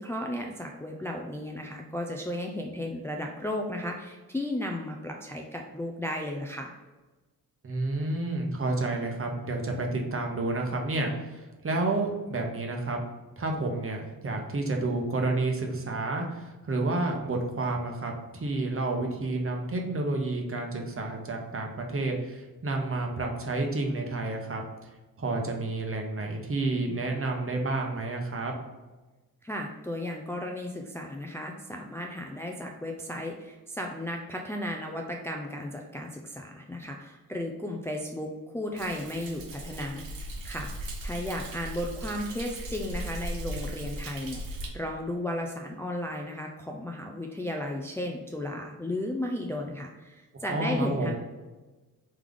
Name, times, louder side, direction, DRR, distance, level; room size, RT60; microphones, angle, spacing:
voice 1, 0.0-6.8 29.4-40.1 40.4-51.1, left 1 dB, 5° left, 1 dB, 0.5 m, -34 dB
voice 2, 7.6-13.0 13.4-24.9 25.2-28.5 50.5-51.1, right 2 dB, 35° right, 2 dB, 0.9 m, -30 dB
Thunder, 38.8-44.7, right 1 dB, 70° right, 0.9 m, -38 dB
3.6 x 3.2 x 3.6 m, 1.2 s
cardioid pair, 65°, 36 cm